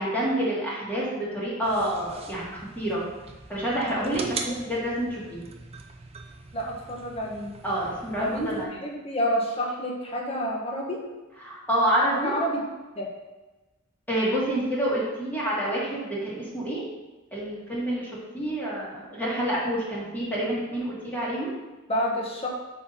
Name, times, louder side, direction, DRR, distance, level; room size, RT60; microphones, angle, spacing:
voice 1, 0.0-3.0 3.5-5.4 7.6-8.7 11.4-12.3 14.1-16.8 17.3-21.5, right 1 dB, 10° left, -7 dB, 1.7 m, -28 dB
sound 1, 1.6-8.6, right 4 dB, 30° right, 0.6 m, -41 dB
voice 2, 6.5-7.5 8.2-8.5 8.8-11.0 12.1-12.6 12.9-13.1 21.9-22.5, equal, 30° left, -2 dB, 1.3 m, -29 dB
6.6 x 4.1 x 5.5 m, 1.1 s
head